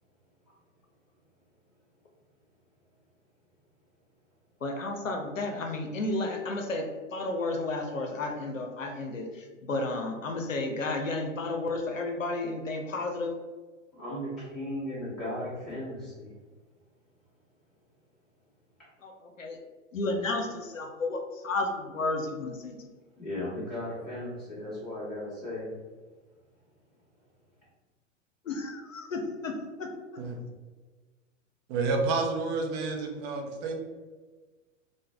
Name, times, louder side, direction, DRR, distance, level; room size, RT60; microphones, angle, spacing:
voice 1, 4.6-9.3 9.6-13.3 19.0-19.1 19.4-19.6 19.9-22.8 28.5-29.5 29.8-29.9, left 2 dB, 90° left, 4 dB, 0.6 m, -32 dB
voice 2, 13.9-16.3 23.2-25.7, left 1 dB, ahead, -12 dB, 1.4 m, -36 dB
voice 3, 31.7-33.7, right 4 dB, 35° right, 2 dB, 0.6 m, -29 dB
3.1 x 2.1 x 3.3 m, 1.3 s
figure-of-eight pair, 100°, 38 cm